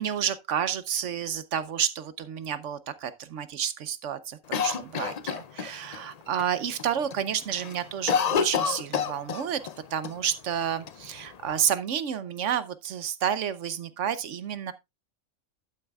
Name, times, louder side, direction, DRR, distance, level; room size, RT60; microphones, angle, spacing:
voice 1, 0.0-9.6 9.9-14.7, right 9 dB, 65° right, 1.0 m, -30 dB
Cough, 4.5-6.0 6.4-6.5 6.8-7.2 7.5-9.8 10.0-10.1 10.9-11.7, left 7 dB, 75° left, 0.3 m, -28 dB
11.5 x 8.8 x 2.3 m
omnidirectional pair, 1.4 m